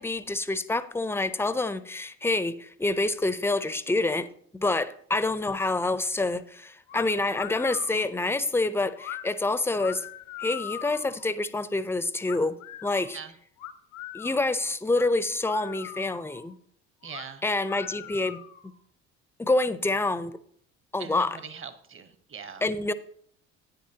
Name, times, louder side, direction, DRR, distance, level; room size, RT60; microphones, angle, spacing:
voice 1, 0.0-4.3 4.5-10.0 10.4-13.2 14.1-16.5 17.4-18.4 19.4-20.4 20.9-21.4 22.6-22.9, left 2 dB, 5° left, 14 dB, 0.6 m, -27 dB
sound 1, 6.9-7.1 7.3-8.1 9.0-9.2 9.7-11.3 12.3-13.1 13.6-14.5 14.9-15.1 15.4-16.5 17.0-17.3 17.6-18.7, left 12 dB, 80° left, 1.0 m, -40 dB
voice 2, 17.0-17.4 21.0-22.7, right 6 dB, 40° right, 11 dB, 1.2 m, -41 dB
10.5 x 9.4 x 2.8 m, 0.64 s
hypercardioid pair, 60°, 33 cm